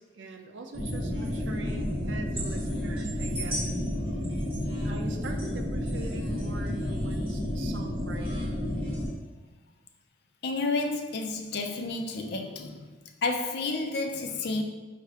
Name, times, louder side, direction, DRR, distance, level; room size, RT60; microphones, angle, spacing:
voice 1, 0.0-3.7 4.8-8.6, right 3 dB, 85° right, 0.5 m, -43 dB
sound 1, 0.7-9.1, equal, 30° right, 0.9 m, -31 dB
voice 2, 10.4-12.9 13.2-14.6, left 3 dB, 60° left, 0.5 m, -30 dB
5.4 x 2.4 x 3.4 m
head